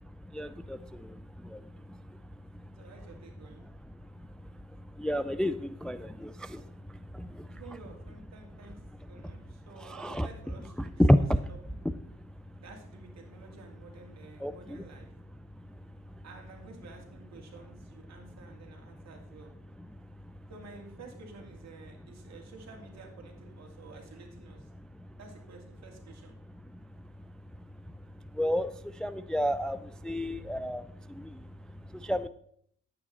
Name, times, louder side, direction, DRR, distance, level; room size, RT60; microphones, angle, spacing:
voice 1, 0.0-2.8 3.9-7.6 9.7-10.3 10.8-11.4 11.8-12.6 14.4-14.8 15.5-16.2 19.8-20.5 24.8-25.2 26.6-32.3, equal, 5° left, 13 dB, 0.3 m, -33 dB
voice 2, 2.7-3.6 7.5-8.8 9.1-11.2 12.6-15.1 16.2-19.5 20.5-24.7 25.2-26.4 30.1-30.4, right 3 dB, 60° right, 2 dB, 2.8 m, -51 dB
10.0 x 8.9 x 4.1 m, 0.64 s
cardioid pair, 90°, 30 cm